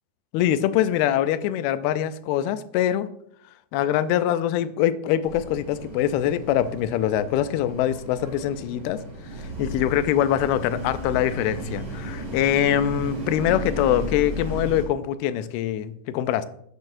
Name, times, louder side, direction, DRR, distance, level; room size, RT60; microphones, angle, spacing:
voice 1, 0.3-3.1 3.7-9.0 9.4-16.5, left 11 dB, 85° left, 13 dB, 2.4 m, -23 dB
sound 1, 5.2-14.8, right 1 dB, 20° right, 3.2 m, -34 dB
10.5 x 8.5 x 2.6 m, 0.70 s
omnidirectional pair, 4.5 m